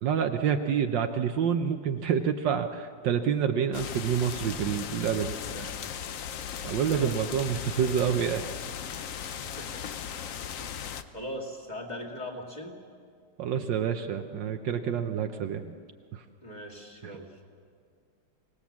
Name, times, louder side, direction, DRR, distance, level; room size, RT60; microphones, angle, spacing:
voice 1, 0.0-5.3 6.6-8.4 13.4-15.7, right 8 dB, 70° right, 7 dB, 1.4 m, -27 dB
sound 1, 3.7-11.0, left 8 dB, 60° left, 0.9 m, -37 dB
voice 2, 5.3-6.1 6.9-7.4 7.7-7.8 9.4-9.8 10.2-10.7 11.1-12.7 16.4-17.4, equal, 20° left, 0 dB, 2.4 m, -41 dB
25.0 x 18.5 x 7.3 m, 2.1 s
omnidirectional pair, 2.2 m